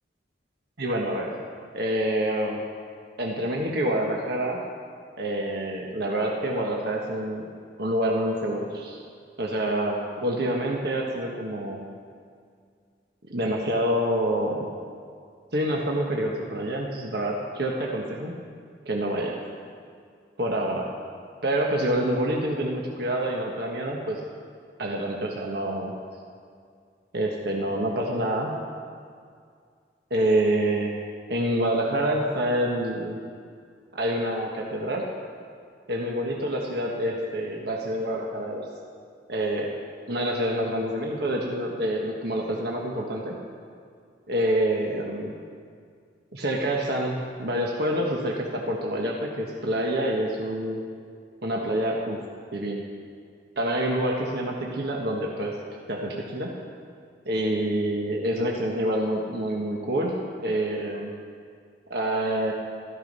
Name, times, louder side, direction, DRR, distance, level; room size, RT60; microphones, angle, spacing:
voice 1, 0.8-1.3 1.7-2.6 3.2-4.6 5.2-7.5 7.8-9.0 9.4-11.8 13.3-14.7 15.5-18.3 18.8-19.4 20.4-20.9 21.4-24.2 24.8-26.0 27.1-28.5 30.1-30.9 31.3-33.2 33.9-35.0 35.9-38.7 39.3-39.7 40.1-43.4 44.3-45.4 46.3-50.8 51.4-52.2 52.5-52.8 53.6-55.6 55.9-56.5 57.2-61.1 61.9-62.5, right 1 dB, 60° right, -1 dB, 1.4 m, -27 dB
14.0 x 13.5 x 5.4 m, 2.2 s
head